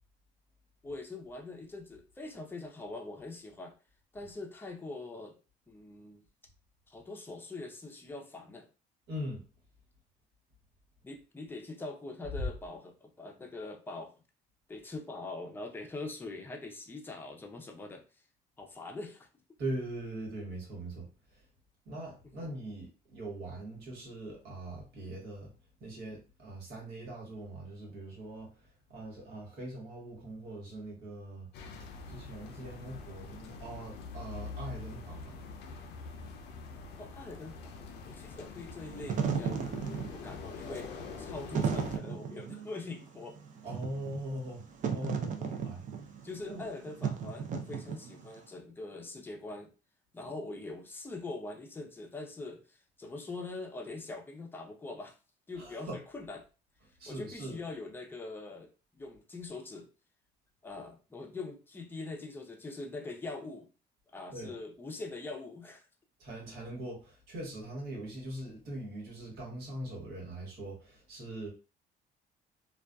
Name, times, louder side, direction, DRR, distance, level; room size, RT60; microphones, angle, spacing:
voice 1, 0.8-3.7 4.1-5.4 5.7-6.2 6.9-8.7 11.0-14.1 14.7-18.0 18.6-19.3 22.2-22.4 37.0-37.7 38.1-39.8 40.1-43.4 45.4-45.6 46.2-49.7 50.1-55.2 55.5-56.4 57.1-59.9 60.6-63.7 64.1-65.9, left 3 dB, 10° left, 0.5 m, -43 dB
voice 2, 9.1-9.4 19.6-21.4 21.8-25.5 25.8-31.5 32.1-35.5 43.6-44.6 44.9-45.8 46.4-46.6 50.2-50.3 55.6-56.0 57.0-57.6 64.3-64.5 66.2-71.5, right 1 dB, 75° right, 1.3 m, -41 dB
sound 1, 31.5-42.0, left 4 dB, 75° left, 0.4 m, -45 dB
Wind / Fire, 38.8-48.4, right 6 dB, 50° right, 0.5 m, -35 dB
2.5 x 2.3 x 2.2 m
cardioid pair, 110°, 17 cm